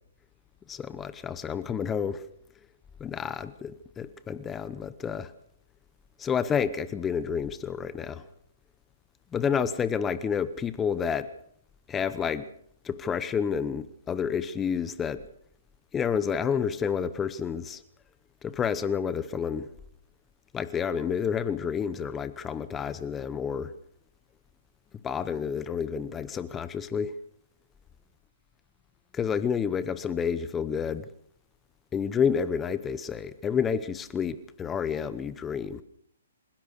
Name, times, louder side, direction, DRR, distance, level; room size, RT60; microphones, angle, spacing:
voice 1, 0.7-2.3 3.0-5.3 6.2-8.2 9.3-11.3 11.9-12.5 12.8-15.3 15.9-17.8 18.4-19.7 20.5-23.7 25.0-27.2 29.1-31.1 31.9-35.8, left 7 dB, 15° left, 0.9 m, -29 dB
27.0 x 16.0 x 6.6 m
hypercardioid pair, 155°, 0 cm